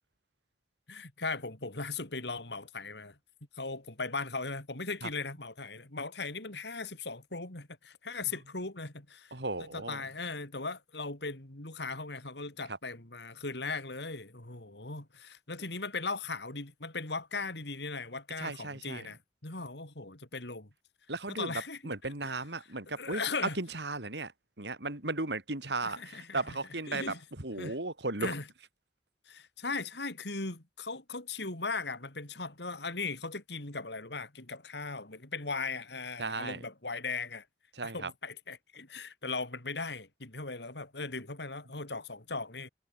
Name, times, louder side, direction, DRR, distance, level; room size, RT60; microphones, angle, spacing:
voice 1, 0.9-3.2 3.5-20.7 21.3-22.3 22.9-23.6 25.8-26.6 26.9-27.2 27.6-27.7 28.2-28.4 29.3-37.4 37.8-42.7, left 4 dB, 70° left, 3.4 m, -38 dB
voice 2, 9.3-10.0 12.7-12.8 18.4-19.1 21.1-23.2 23.5-24.3 24.6-28.3 36.2-36.6 37.7-38.1, right 2 dB, 75° right, 3.4 m, -36 dB
head